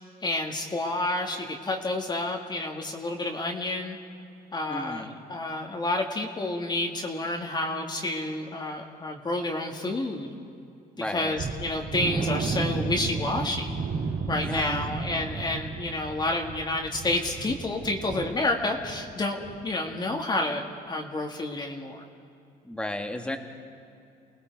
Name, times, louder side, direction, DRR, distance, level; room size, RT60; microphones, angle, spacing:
voice 1, 0.2-4.0 4.5-10.3 11.1-13.8 14.3-22.0, left 2 dB, 25° left, 2 dB, 1.8 m, -29 dB
voice 2, 4.7-5.2 11.0-11.4 14.4-14.9 22.6-23.4, left 1 dB, 5° left, 5 dB, 1.7 m, -33 dB
sound 1, 11.4-19.1 19.4-19.6 20.0-20.1, right 4 dB, 65° right, 2.7 m, -33 dB
29.0 x 19.0 x 4.7 m, 2.6 s
cardioid pair, 110°, 17 cm